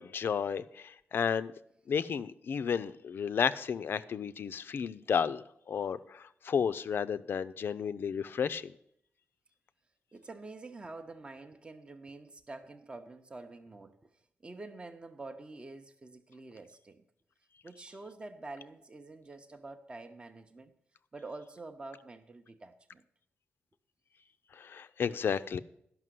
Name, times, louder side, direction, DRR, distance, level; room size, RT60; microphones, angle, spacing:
voice 1, 0.0-1.5 1.9-8.7 24.5-25.6, left 7 dB, 60° left, 0.4 m, -32 dB
voice 2, 10.1-14.0 14.4-17.0 17.6-20.7 21.1-23.0, right 3 dB, 25° right, 0.7 m, -47 dB
11.0 x 5.9 x 7.6 m
wide cardioid pair, 115°, 4 cm